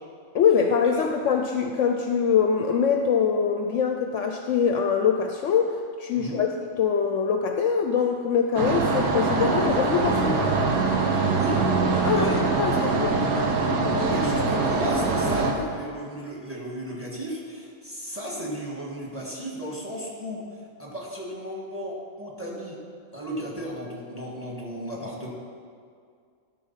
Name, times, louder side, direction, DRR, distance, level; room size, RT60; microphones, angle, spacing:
voice 1, 0.3-5.7 6.0-6.5 6.7-10.4 12.0-13.2, left 6 dB, 65° left, 3 dB, 0.8 m, -23 dB
sound 1, 8.5-15.5, right 3 dB, 90° right, 1.4 m, -23 dB
voice 2, 11.1-11.6 12.0-12.4 14.0-20.4 20.8-22.8 23.1-25.3, equal, 10° right, -3 dB, 1.5 m, -34 dB
12.5 x 4.5 x 5.6 m, 2.2 s
omnidirectional pair, 1.5 m